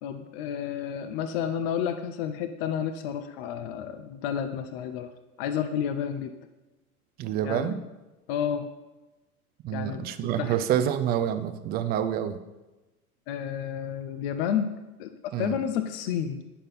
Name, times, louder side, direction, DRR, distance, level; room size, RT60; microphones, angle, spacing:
voice 1, 0.0-5.1 5.4-6.4 7.4-7.7 8.3-8.7 9.7-10.5 13.3-14.7 15.0-15.1 15.4-16.4, left 8 dB, 40° left, 9 dB, 0.7 m, -31 dB
voice 2, 7.2-7.8 9.6-12.4 15.3-15.6, right 10 dB, 20° right, 10 dB, 0.5 m, -27 dB
9.9 x 6.5 x 5.6 m, 1.1 s
figure-of-eight pair, 85°, 45 cm